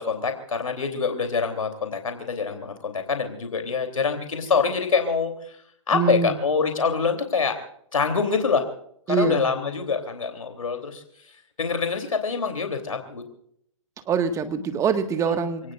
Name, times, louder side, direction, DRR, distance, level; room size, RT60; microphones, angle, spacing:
voice 1, 0.0-5.6 5.9-7.6 7.9-8.7 9.1-11.3 11.6-13.2 15.3-15.4 15.6-15.7, left 5 dB, 90° left, 5 dB, 3.3 m, -25 dB
voice 2, 5.9-6.4 9.1-9.5 14.0-15.7, right 5 dB, 20° right, 7 dB, 1.7 m, -24 dB
28.0 x 18.5 x 2.5 m, 0.67 s
hypercardioid pair, 130°, 17 cm